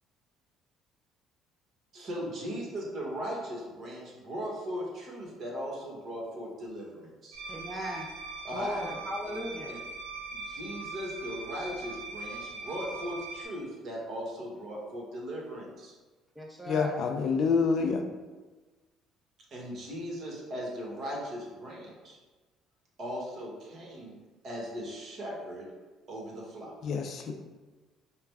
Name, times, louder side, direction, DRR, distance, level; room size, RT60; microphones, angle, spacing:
voice 1, 1.9-7.4 8.4-8.9 9.3-9.4 9.7-9.8 10.3-15.9 19.5-22.2 23.0-24.1 24.4-25.7 26.1-26.7, equal, 50° right, -2 dB, 1.4 m, -38 dB
sound 1, 7.3-13.4, right 3 dB, 85° right, 0.7 m, -41 dB
voice 2, 7.5-8.1 8.5-9.7 16.4-17.0, equal, ahead, -1 dB, 0.5 m, -37 dB
voice 3, 16.7-18.0 26.8-27.3, left 5 dB, 60° left, 4 dB, 0.4 m, -27 dB
4.7 x 2.2 x 3.5 m, 1.3 s
supercardioid pair, 85°, 0 cm